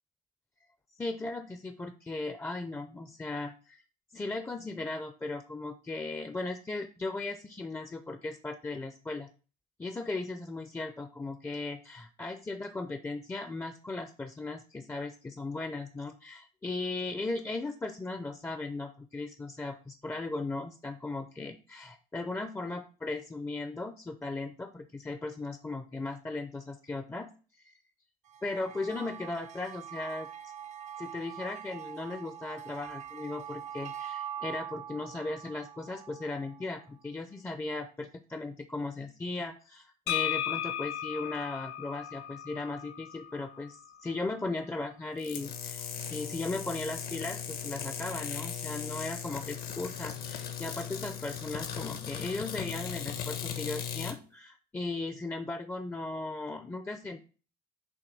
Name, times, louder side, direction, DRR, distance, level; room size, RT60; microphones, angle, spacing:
voice 1, 1.0-3.8 4.1-9.3 9.8-27.3 27.6-27.7 28.4-30.3 31.0-57.2, left 3 dB, 15° left, 7 dB, 0.5 m, -37 dB
sound 1, 28.3-36.9, right 9 dB, 45° right, 0.5 m, -43 dB
sound 2, 40.1-43.8, left 11 dB, 85° left, 0.6 m, -35 dB
sound 3, 45.2-54.2, left 8 dB, 60° left, 1.0 m, -38 dB
7.1 x 2.7 x 5.2 m, 0.36 s
cardioid pair, 110°, 17 cm